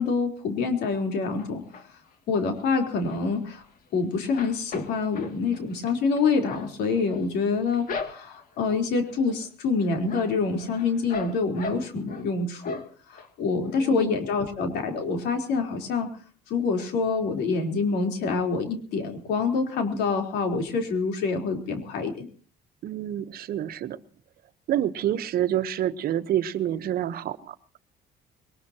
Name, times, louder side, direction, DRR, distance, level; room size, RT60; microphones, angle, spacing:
voice 1, 0.0-1.6 2.3-3.6 3.9-12.8 13.1-16.1 16.5-22.3, left 4 dB, 80° left, 3.9 m, -26 dB
sound 1, 1.4-2.1 2.6-3.9 4.2-8.6 9.0-9.5 9.8-12.3 12.6-13.3 13.7-13.8 14.0-14.1, left 4 dB, 55° left, 2.5 m, -39 dB
voice 2, 13.8-14.1 22.8-24.0 24.7-27.6, right 11 dB, 65° right, 1.1 m, -28 dB
22.0 x 19.5 x 3.0 m
cardioid pair, 110°, 17 cm